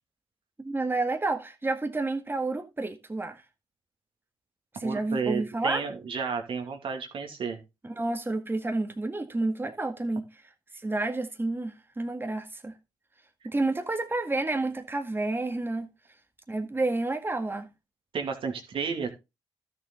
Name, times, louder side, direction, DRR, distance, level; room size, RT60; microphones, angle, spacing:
voice 1, 0.6-3.4 4.8-5.8 7.8-10.3 10.7-12.7 13.4-15.9 16.5-17.7, right 2 dB, 20° right, 1.8 m, -30 dB
voice 2, 4.8-7.6 18.1-19.1, right 5 dB, 70° right, 2.5 m, -32 dB
12.0 x 6.9 x 4.0 m
supercardioid pair, 50°, 10 cm